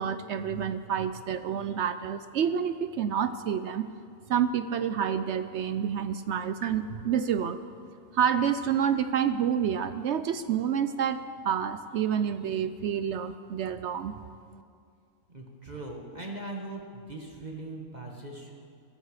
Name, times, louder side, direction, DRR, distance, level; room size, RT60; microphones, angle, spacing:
voice 1, 0.0-3.9 4.3-7.6 8.1-14.1, right 8 dB, 65° right, 11 dB, 0.7 m, -28 dB
voice 2, 15.3-18.5, right 2 dB, 30° right, 0 dB, 1.5 m, -40 dB
23.0 x 13.0 x 4.9 m, 2.3 s
omnidirectional pair, 1.6 m